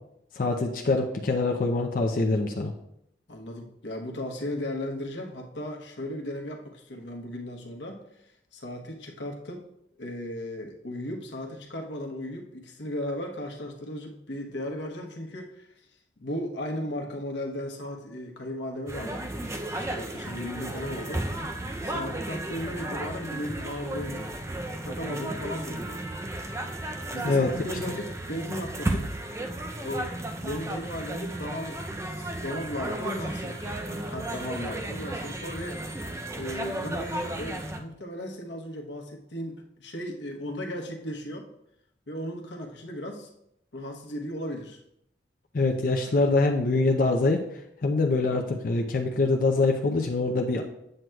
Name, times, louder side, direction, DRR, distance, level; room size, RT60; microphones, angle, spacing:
voice 1, 0.4-2.7 27.2-27.5 45.5-47.4 47.8-50.6, left 3 dB, 50° left, 1 dB, 0.5 m, -24 dB
voice 2, 3.3-9.7 10.0-15.7 16.2-21.3 21.8-24.3 24.8-26.0 26.8-29.1 29.8-31.8 32.1-35.8 36.3-41.5 42.1-43.3 43.7-44.8, left 1 dB, 90° left, 2 dB, 1.0 m, -36 dB
sound 1, 18.9-37.8, right 1 dB, 15° right, 0.4 m, -34 dB
7.7 x 7.5 x 2.3 m, 0.79 s
head